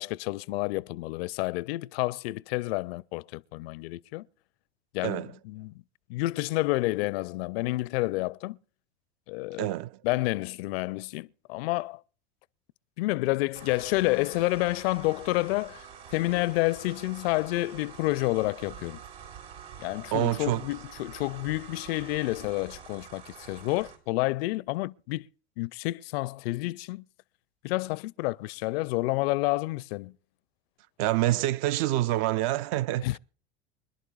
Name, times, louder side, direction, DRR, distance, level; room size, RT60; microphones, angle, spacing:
voice 1, 0.0-4.3 4.9-5.8 6.1-8.6 9.3-9.7 10.0-12.0 13.0-19.0 19.8-25.3 25.6-27.1 27.6-30.2 33.0-33.2, left 21 dB, 60° left, 0.5 m, -29 dB
voice 2, 9.6-10.0 20.1-20.6 31.0-33.2, right 15 dB, 50° right, 0.5 m, -27 dB
sound 1, 13.5-24.0, right 7 dB, 80° right, 3.6 m, -46 dB
25.5 x 11.0 x 2.4 m
hypercardioid pair, 80°, 34 cm